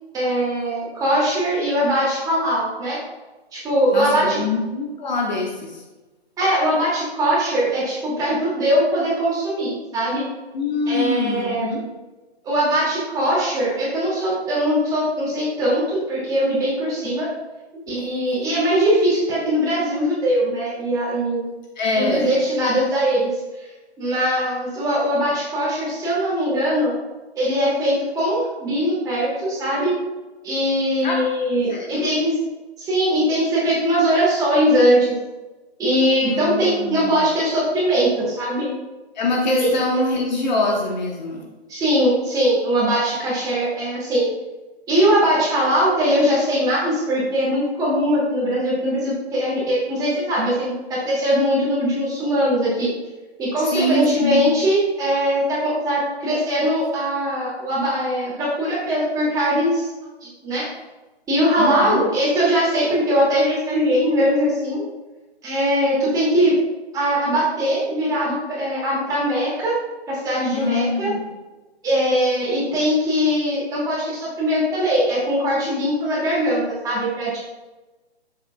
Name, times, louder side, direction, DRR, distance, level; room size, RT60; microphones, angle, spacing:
voice 1, 0.1-3.0 3.5-4.4 6.4-10.2 10.9-11.7 12.4-17.3 17.9-21.4 22.0-23.3 23.6-23.7 24.0-26.9 27.4-29.9 30.4-32.4 32.8-35.2 35.8-38.7 39.2-39.3 39.6-39.7 41.7-44.3 44.9-52.9 53.4-60.7 61.3-64.8 65.4-66.5 66.9-69.8 70.1-71.1 71.8-77.4, equal, 10° right, -7 dB, 2.5 m, -21 dB
voice 2, 3.9-5.8 10.5-11.8 21.8-22.3 31.0-31.2 31.7-32.1 36.2-37.2 39.1-41.4 53.7-54.5 61.6-62.0 70.5-71.2, left 2 dB, 45° left, -1 dB, 1.4 m, -24 dB
9.5 x 7.4 x 2.4 m, 1.1 s
hypercardioid pair, 145°, 32 cm